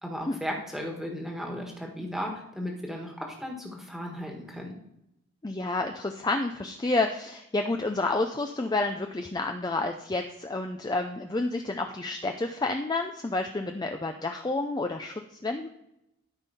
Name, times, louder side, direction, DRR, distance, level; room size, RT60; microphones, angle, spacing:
voice 1, 0.0-4.7, equal, ahead, 0 dB, 1.5 m, -35 dB
voice 2, 5.4-15.1 15.4-15.7, left 2 dB, 20° left, 5 dB, 0.4 m, -29 dB
12.5 x 5.4 x 4.2 m, 0.84 s
head